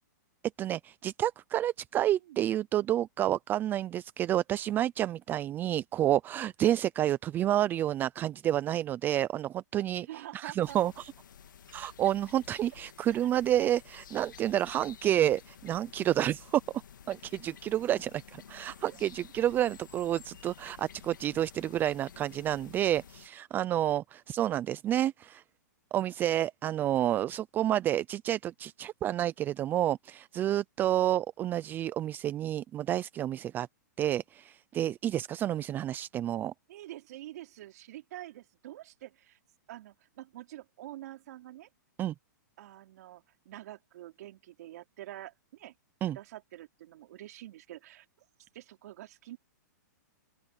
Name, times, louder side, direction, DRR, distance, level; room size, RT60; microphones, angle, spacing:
voice 1, 0.6-10.1 10.3-10.9 11.7-16.6 17.1-25.4 25.9-33.7 34.0-36.5 42.0-42.1 46.0-46.2, right 12 dB, 20° right, 0.4 m, -29 dB
voice 2, 1.9-2.4 10.0-10.8 13.1-13.2 18.8-19.0 36.7-39.4 39.7-41.7 42.6-45.7 46.1-48.1 48.5-49.4, right 14 dB, 55° right, 4.5 m, -47 dB
sound 1, 10.6-23.3, left 8 dB, 85° left, 2.5 m, -52 dB
open air
hypercardioid pair, 140°, 10 cm